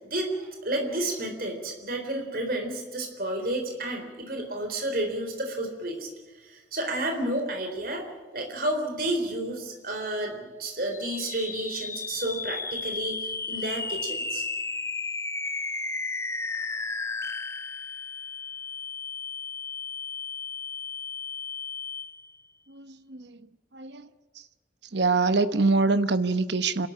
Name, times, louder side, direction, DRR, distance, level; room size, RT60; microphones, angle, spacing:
voice 1, 0.0-6.1 6.4-8.0 8.3-14.5, right 1 dB, 50° right, 3 dB, 4.0 m, -31 dB
sound 1, 10.9-22.4, left 4 dB, 15° left, 0.6 m, -34 dB
voice 2, 22.7-23.4 23.7-24.1 24.9-26.9, right 3 dB, 70° right, 12 dB, 1.0 m, -24 dB
27.0 x 13.0 x 8.7 m, 1.2 s
head